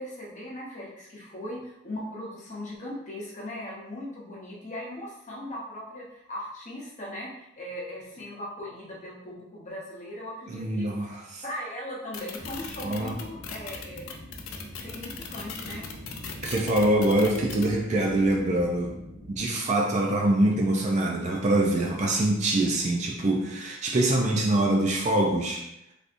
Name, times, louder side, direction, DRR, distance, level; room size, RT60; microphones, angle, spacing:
voice 1, 0.0-7.3 7.6-10.9 11.4-14.0 14.8-15.9, left 1 dB, 35° left, -5 dB, 0.8 m, -38 dB
voice 2, 10.5-11.4 12.8-13.2 16.4-18.9 19.3-25.6, right 1 dB, 35° right, 0 dB, 0.4 m, -24 dB
sound 1, 12.1-17.7, left 7 dB, 90° left, 0.4 m, -38 dB
sound 2, 12.4-19.4, equal, 80° right, 1.3 m, -43 dB
3.3 x 2.7 x 2.5 m, 0.84 s
head